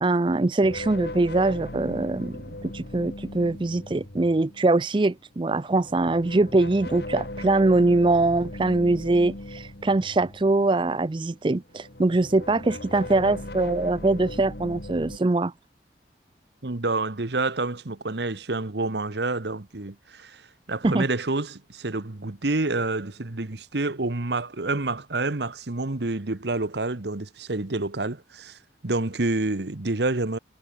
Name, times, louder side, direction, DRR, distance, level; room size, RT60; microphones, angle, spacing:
voice 1, 0.0-15.5 20.8-21.1, right 2 dB, 25° right, 0.4 m, -23 dB
sound 1, 0.6-4.8 5.6-11.3 11.7-15.2, left 1 dB, 60° left, 2.2 m, -38 dB
voice 2, 16.6-20.4 20.7-28.6 28.8-30.4, right 2 dB, 70° right, 1.3 m, -28 dB
head